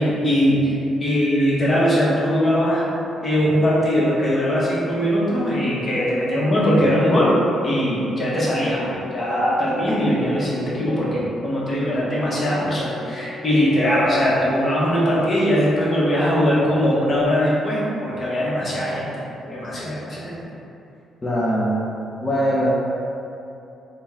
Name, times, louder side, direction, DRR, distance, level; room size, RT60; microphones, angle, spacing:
voice 1, 0.0-2.9 3.2-19.1 19.5-20.5, equal, 40° left, -6 dB, 1.1 m, -20 dB
Organ, 5.0-15.9 17.1-17.2, left 4 dB, 70° left, 0.7 m, -42 dB
voice 2, 21.2-21.9 22.2-22.7, equal, 20° left, -9 dB, 0.6 m, -21 dB
4.1 x 2.3 x 3.5 m, 2.8 s
cardioid pair, 90°, 0 cm